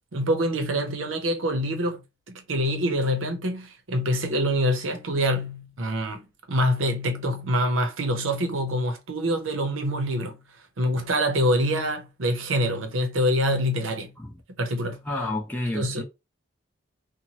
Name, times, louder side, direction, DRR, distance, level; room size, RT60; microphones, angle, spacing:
voice 1, 0.1-2.0 2.3-6.2 6.5-10.4 10.8-14.1 14.6-15.0 15.7-16.0, equal, 90° right, 0.7 m, -25 dB
voice 2, 15.0-16.0, left 2 dB, 10° left, 0.6 m, -30 dB
3.0 x 2.2 x 2.7 m
head